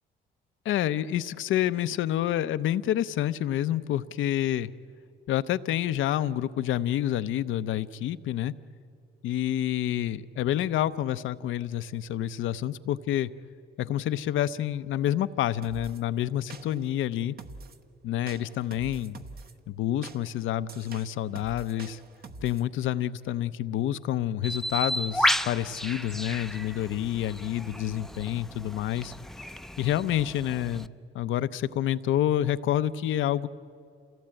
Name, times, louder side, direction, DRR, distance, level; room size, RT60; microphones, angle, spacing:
voice 1, 0.6-4.7 5.3-8.5 9.2-13.3 13.8-17.3 18.0-19.2 19.7-22.0 22.4-29.1 29.8-30.9 31.1-33.5, left 12 dB, 80° left, 13 dB, 0.7 m, -28 dB
sound 1, 15.6-16.0 16.5-16.9 17.4-17.8 18.3-19.5 20.0-22.7, right 4 dB, 50° right, 1.2 m, -45 dB
Bird, 24.4-30.9, equal, ahead, 0.6 m, -32 dB
27.5 x 17.0 x 8.9 m, 2.5 s
cardioid pair, 90°, 20 cm